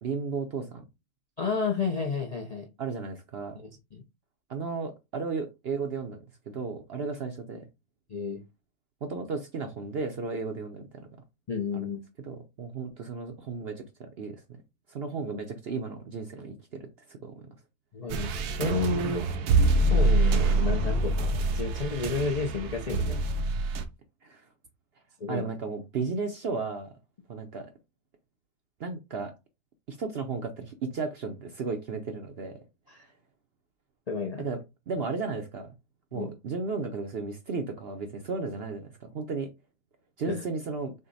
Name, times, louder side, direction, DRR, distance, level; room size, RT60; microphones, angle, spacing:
voice 1, 0.0-0.8 2.8-3.6 4.5-6.2 6.5-7.6 9.0-11.1 11.7-11.9 12.3-14.4 14.9-17.3 24.2-24.4 25.3-26.9 27.3-27.7 28.8-29.3 29.9-32.6 34.4-34.6 34.9-35.7 36.1-39.5 40.2-40.9, right 4 dB, 60° right, 0.7 m, -34 dB
voice 2, 1.4-2.7 3.6-4.0 8.1-8.4 11.5-12.0 17.9-19.3 19.9-23.2 25.2-25.5 32.9-33.1 34.1-34.5 36.1-36.3 40.3-40.4, left 4 dB, 55° left, 0.4 m, -31 dB
sound 1, 18.1-23.8, right 2 dB, 90° right, 1.2 m, -25 dB
6.3 x 2.1 x 4.0 m
omnidirectional pair, 1.6 m